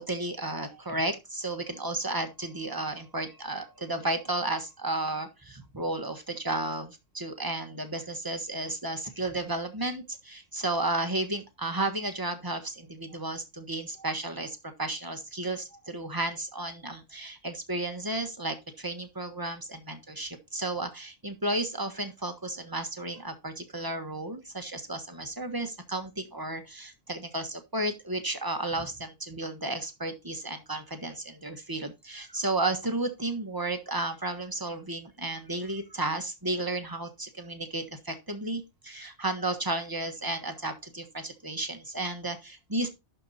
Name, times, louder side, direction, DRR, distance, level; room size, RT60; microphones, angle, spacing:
voice 1, 0.0-42.9, right 2 dB, 20° right, 7 dB, 1.4 m, -33 dB
11.5 x 4.5 x 4.2 m, 0.25 s
omnidirectional pair, 1.3 m